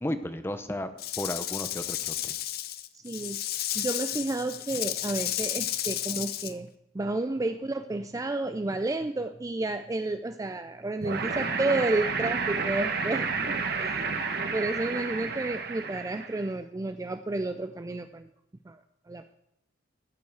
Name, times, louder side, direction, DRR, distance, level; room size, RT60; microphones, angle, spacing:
voice 1, 0.0-0.9 1.2-2.3, left 1 dB, 15° left, 9 dB, 0.8 m, -33 dB
Rattle / Rattle (instrument), 1.0-6.5, left 12 dB, 55° left, 0.6 m, -32 dB
voice 2, 2.9-3.4 3.7-6.7 6.9-18.3 18.7-18.8 19.1-19.3, right 2 dB, 15° right, 9 dB, 0.4 m, -31 dB
sound 1, 11.0-16.5, right 4 dB, 55° right, 1.2 m, -31 dB
13.5 x 5.5 x 7.9 m, 0.80 s
head